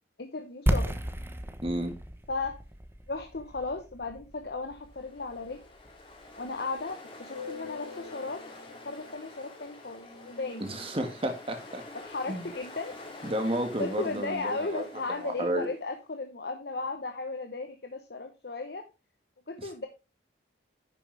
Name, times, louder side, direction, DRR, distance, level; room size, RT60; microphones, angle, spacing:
voice 1, 0.2-1.0 2.3-2.6 3.1-5.6 6.4-10.8 11.9-18.9 19.5-19.9, left 3 dB, 60° left, 6 dB, 1.0 m, -36 dB
sound 1, 0.7-6.4, equal, 15° right, 1.0 m, -34 dB
voice 2, 1.6-1.9 10.6-11.8 12.3-12.5 13.2-14.8 15.2-15.7 19.6-19.7, right 1 dB, 30° right, 6 dB, 1.8 m, -32 dB
Ocean, 4.7-15.8, left 3 dB, 30° left, 2.7 m, -46 dB
10.5 x 6.7 x 3.4 m, 0.27 s
head